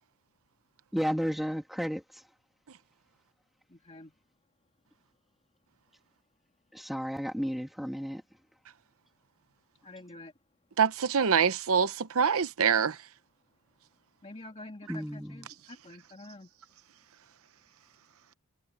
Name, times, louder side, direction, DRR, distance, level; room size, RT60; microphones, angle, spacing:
voice 1, 0.9-2.0 6.7-8.2 14.9-15.5, equal, ahead, 1.9 m, -32 dB
voice 2, 3.7-4.1 9.8-10.3 14.2-16.5, left 2 dB, 30° left, 2.3 m, -47 dB
voice 3, 10.8-13.0, right 6 dB, 65° right, 0.8 m, -25 dB
head